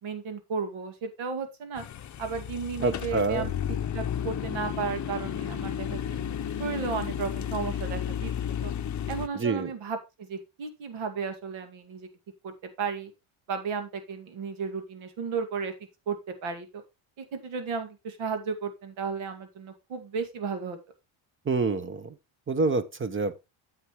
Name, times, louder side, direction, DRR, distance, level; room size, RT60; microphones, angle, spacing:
voice 1, 0.0-1.8 2.2-6.2 6.6-8.3 8.6-8.7 9.1-12.1 12.4-12.5 12.8-13.1 13.5-15.7 16.1-16.8 17.2-20.8, right 5 dB, 70° right, 2.3 m, -34 dB
sound 1, 1.7-9.3, left 9 dB, 35° left, 0.8 m, -33 dB
voice 2, 2.8-3.4 9.3-9.7 21.5-22.1 22.5-23.4, right 3 dB, 25° right, 0.9 m, -27 dB
9.3 x 7.4 x 3.0 m
cardioid pair, 115°, 50 cm